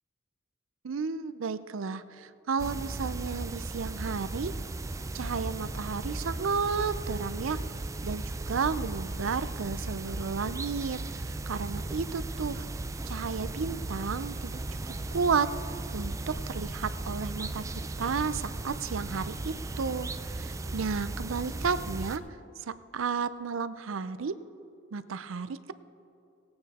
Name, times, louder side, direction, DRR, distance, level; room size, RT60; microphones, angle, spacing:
voice 1, 0.8-4.5 5.1-7.6 8.0-12.7 13.1-14.8 15.1-15.5 15.9-17.6 18.0-22.2 22.7-24.4 24.9-25.7, right 5 dB, 85° right, 14 dB, 0.5 m, -32 dB
sound 1, 2.6-22.2, right 2 dB, 15° right, 0.3 m, -36 dB
18.0 x 8.6 x 4.2 m, 2.6 s
head